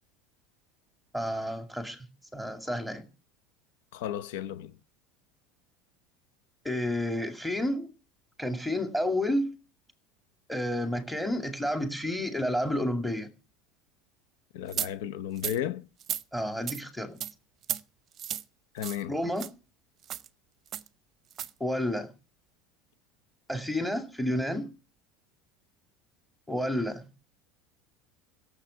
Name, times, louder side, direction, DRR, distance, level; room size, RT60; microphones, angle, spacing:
voice 1, 1.1-2.1 2.3-3.1 6.6-7.9 8.4-9.5 10.5-13.3 16.3-17.2 19.1-19.5 21.6-22.1 23.5-24.7 26.5-27.1, left 1 dB, ahead, 2.2 m, -30 dB
voice 2, 3.9-4.7 14.5-15.9 18.7-19.1, left 10 dB, 80° left, 0.8 m, -34 dB
sound 1, 14.7-14.9 15.4-15.6 16.0-16.2 16.7-16.8 17.2-17.3 17.6-17.8 18.2-18.4 18.8-19.0 19.4-19.5 20.0-20.3 20.7-20.9 21.3-21.5, right 10 dB, 40° right, 0.7 m, -33 dB
16.5 x 7.6 x 6.9 m
supercardioid pair, 125°, 0 cm